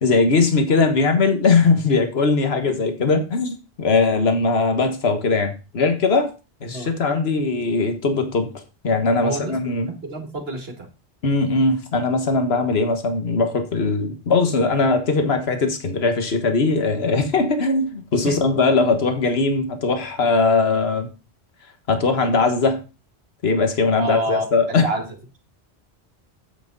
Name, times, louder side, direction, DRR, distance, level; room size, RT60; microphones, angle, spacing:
voice 1, 0.0-6.3 6.6-8.5 8.8-9.9 11.2-21.1 21.9-22.8 23.4-24.9, left 3 dB, 70° left, 6 dB, 1.7 m, -20 dB
voice 2, 9.2-9.5 9.8-10.9 18.2-18.3 24.0-25.4, right 2 dB, 65° right, 3 dB, 2.3 m, -29 dB
8.9 x 7.8 x 3.9 m, 0.30 s
omnidirectional pair, 1.1 m